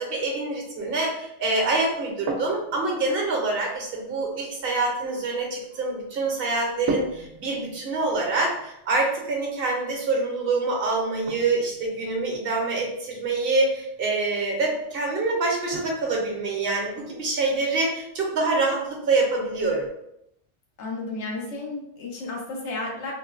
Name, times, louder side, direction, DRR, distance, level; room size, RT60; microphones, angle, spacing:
voice 1, 0.0-19.9, right 3 dB, 60° right, 0 dB, 0.9 m, -26 dB
sound 1, 1.8-19.9, right 3 dB, 90° right, 0.9 m, -41 dB
voice 2, 20.8-23.1, left 2 dB, 85° left, -1 dB, 1.1 m, -32 dB
3.8 x 2.1 x 2.4 m, 0.79 s
omnidirectional pair, 1.1 m